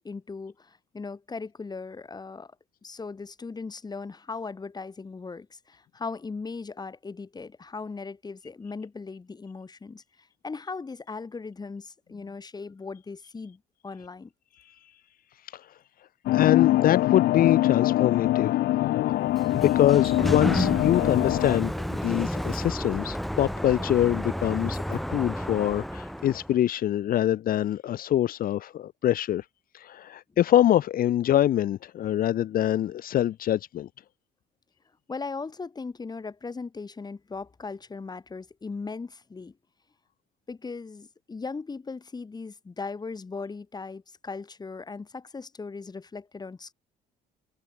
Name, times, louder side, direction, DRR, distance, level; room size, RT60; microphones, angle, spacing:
voice 1, 0.0-2.5 2.8-14.3 35.1-39.5 40.5-46.7, left 4 dB, 25° left, 5.7 m, -38 dB
voice 2, 15.4-15.8 16.3-18.6 18.8-19.0 19.5-29.4 29.7-33.9, left 12 dB, 60° left, 1.4 m, -25 dB
sound 1, 16.3-21.6, left 15 dB, 75° left, 1.7 m, -23 dB
Sliding door, 19.2-26.5, equal, ahead, 1.5 m, -31 dB
cardioid pair, 110°, 17 cm